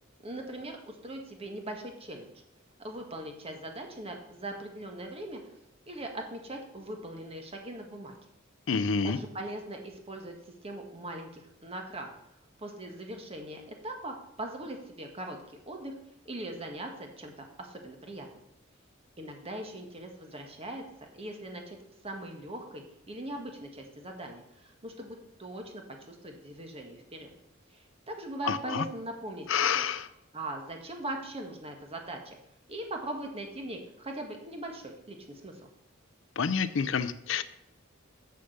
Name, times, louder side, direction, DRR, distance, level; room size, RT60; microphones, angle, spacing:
voice 1, 0.2-2.3 2.8-5.4 5.9-8.2 9.0-12.1 12.6-15.4 15.7-15.9 16.2-17.3 17.6-18.3 19.2-21.8 22.0-27.3 27.7-29.5 29.7-29.8 30.3-32.4 32.7-35.6, right 1 dB, 30° right, 3 dB, 1.5 m, -40 dB
voice 2, 8.7-9.2 28.4-28.8 29.5-30.1 36.4-37.4, left 6 dB, 70° left, 15 dB, 0.5 m, -28 dB
6.8 x 6.8 x 6.6 m, 0.82 s
head